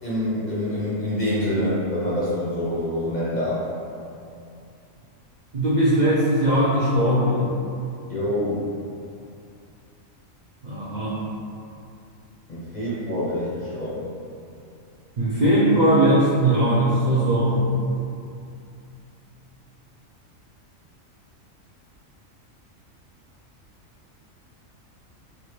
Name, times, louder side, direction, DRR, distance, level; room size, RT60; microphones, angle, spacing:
voice 1, 0.0-3.6 8.1-8.7 12.5-14.0, left 1 dB, 40° left, -9 dB, 0.7 m, -26 dB
voice 2, 5.5-7.4 10.6-11.2 15.2-17.6, right 1 dB, 60° right, -9 dB, 0.4 m, -19 dB
3.2 x 2.6 x 3.0 m, 2.5 s
omnidirectional pair, 1.4 m